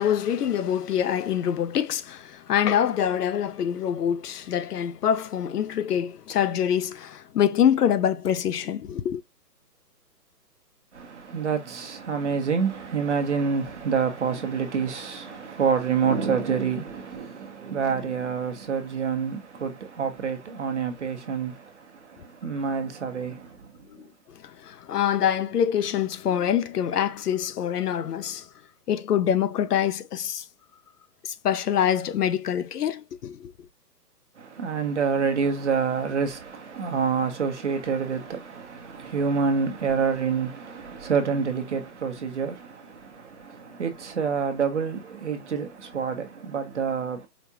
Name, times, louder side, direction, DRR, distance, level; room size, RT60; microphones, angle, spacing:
voice 1, 0.0-9.2 23.9-28.5 28.9-30.5 31.2-33.5, left 9 dB, 70° left, 0.6 m, -25 dB
voice 2, 10.9-24.0 34.4-47.3, right 6 dB, 45° right, 1.0 m, -27 dB
5.0 x 2.4 x 2.8 m
hypercardioid pair, 175°, 49 cm